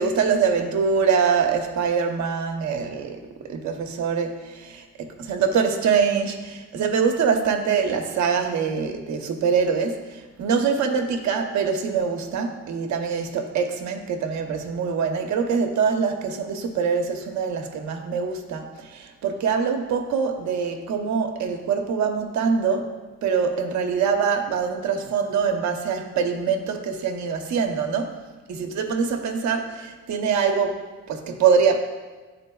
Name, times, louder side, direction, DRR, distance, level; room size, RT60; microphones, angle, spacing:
voice 1, 0.0-3.2 3.5-22.9 23.2-28.2 28.5-31.8, right 6 dB, 70° right, 5 dB, 0.8 m, -24 dB
11.0 x 3.9 x 2.3 m, 1.3 s
cardioid pair, 90°, 30 cm